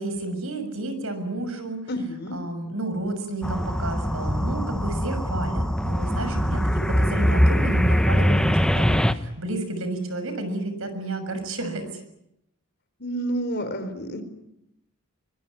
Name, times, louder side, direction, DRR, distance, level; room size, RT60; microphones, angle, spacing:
voice 1, 0.0-1.8 2.3-12.0, right 2 dB, 65° right, 9 dB, 6.6 m, -31 dB
voice 2, 1.9-2.4 13.0-14.2, right 1 dB, 45° left, 10 dB, 3.9 m, -29 dB
sound 1, 3.4-9.1, equal, 5° left, 1.0 m, -22 dB
24.5 x 22.5 x 9.7 m, 0.81 s
head